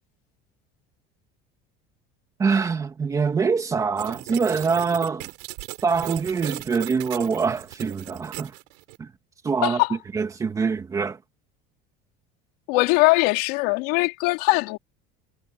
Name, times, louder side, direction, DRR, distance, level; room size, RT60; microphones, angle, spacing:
voice 1, 2.4-5.3 5.8-8.5 9.0-9.1 9.4-9.8 10.1-11.2, right 5 dB, 15° right, 2.5 m, -24 dB
sound 1, 4.0-9.0, right 30 dB, 80° right, 5.8 m, -37 dB
voice 2, 9.6-10.0 12.7-14.8, left 25 dB, 75° left, 3.7 m, -21 dB
cardioid pair, 180°, 20 cm